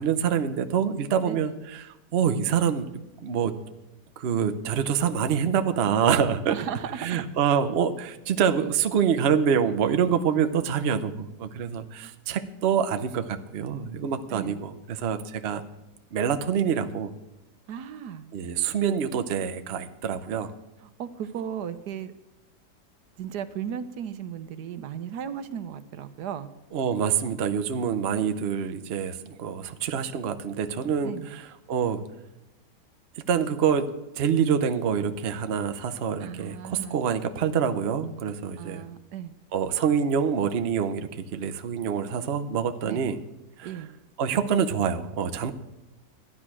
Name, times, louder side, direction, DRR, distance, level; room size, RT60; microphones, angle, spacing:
voice 1, 0.0-3.5 4.2-6.7 7.0-15.6 16.1-17.1 18.3-20.5 26.7-32.0 33.2-33.9 34.2-38.8 39.5-43.2 43.6-43.8 44.2-45.5, right 7 dB, 50° right, 9 dB, 0.8 m, -26 dB
voice 2, 6.5-7.2 12.0-12.1 14.3-14.6 17.7-18.3 20.8-22.1 23.2-26.5 31.0-31.4 36.2-37.0 38.6-39.3 42.8-43.0 43.6-43.9, right 9 dB, 75° right, 13 dB, 1.3 m, -36 dB
13.0 x 10.0 x 6.1 m, 0.98 s
omnidirectional pair, 1.8 m